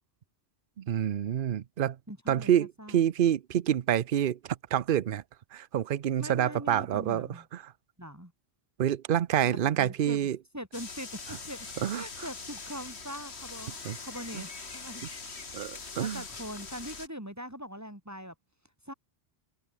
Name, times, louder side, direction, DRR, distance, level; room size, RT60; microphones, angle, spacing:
voice 1, 0.8-2.0 2.3-5.2 5.5-7.7 8.8-10.4 11.8-12.3 13.8-14.0 14.3-14.4 15.5-16.2, right 10 dB, 55° right, 0.8 m, -28 dB
voice 2, 2.1-3.0 6.2-7.5 8.0-8.3 9.4-10.3 10.5-11.6 11.9-15.0 15.3-15.4 15.8-18.3 18.9-19.0, equal, 15° right, 4.0 m, -42 dB
sound 1, 10.7-17.1, left 4 dB, 75° left, 2.4 m, -42 dB
omnidirectional pair, 1.1 m